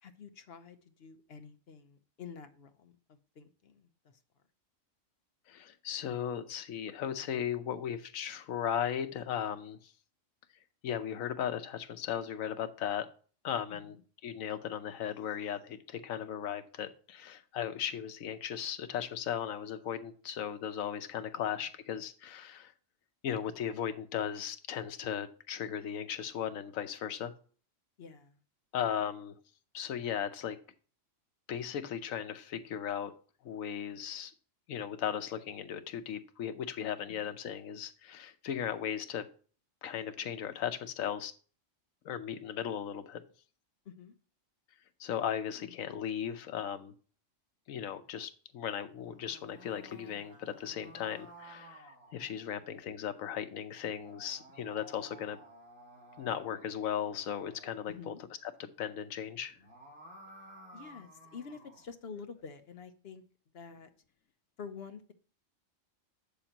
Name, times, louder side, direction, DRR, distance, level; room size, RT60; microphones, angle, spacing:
voice 1, 0.0-4.2 13.7-14.0 28.0-28.4 37.1-37.3 43.9-44.1 45.5-45.7 57.9-58.2 60.7-63.2 63.5-63.9 64.6-65.1, left 6 dB, 55° left, 8 dB, 0.9 m, -48 dB
voice 2, 5.5-9.9 10.8-13.1 13.4-13.9 14.2-22.7 23.2-27.3 28.7-29.4 29.7-30.6 31.5-33.1 33.4-34.3 34.7-39.2 39.8-41.3 42.0-43.2 45.0-46.9 47.7-55.4 56.2-58.1 58.4-59.6, left 9 dB, 85° left, 10 dB, 1.2 m, -37 dB
sound 1, 48.9-52.8 53.8-58.0 59.4-61.9, right 1 dB, 40° right, 2.9 m, -55 dB
7.8 x 6.9 x 2.8 m, 0.40 s
omnidirectional pair, 1.4 m